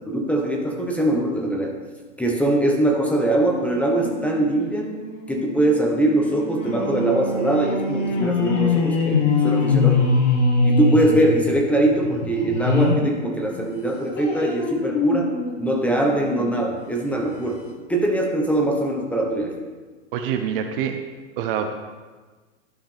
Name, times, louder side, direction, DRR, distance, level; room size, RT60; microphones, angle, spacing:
voice 1, 0.0-1.7 2.2-4.9 5.3-10.1 10.6-15.3 15.6-17.6 17.9-19.5, right 1 dB, 5° left, 0 dB, 1.1 m, -22 dB
sound 1, 3.5-13.1 13.5-16.6 17.1-17.2 17.5-17.6, left 4 dB, 80° left, 1.7 m, -24 dB
voice 2, 20.1-21.0 21.4-21.8, right 8 dB, 50° right, 5 dB, 0.7 m, -25 dB
11.5 x 5.5 x 3.5 m, 1.3 s
hypercardioid pair, 115°, 36 cm